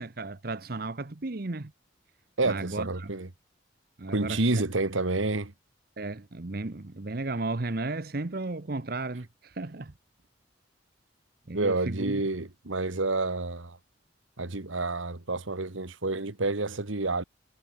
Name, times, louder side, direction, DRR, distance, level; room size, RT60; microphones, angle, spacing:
voice 1, 0.0-1.7 2.4-3.1 4.0-4.6 6.0-9.9 11.5-12.2, right 2 dB, 50° right, 0.9 m, -34 dB
voice 2, 2.4-3.3 4.1-5.5 11.5-13.8 14.4-17.2, right 2 dB, 85° right, 1.8 m, -29 dB
head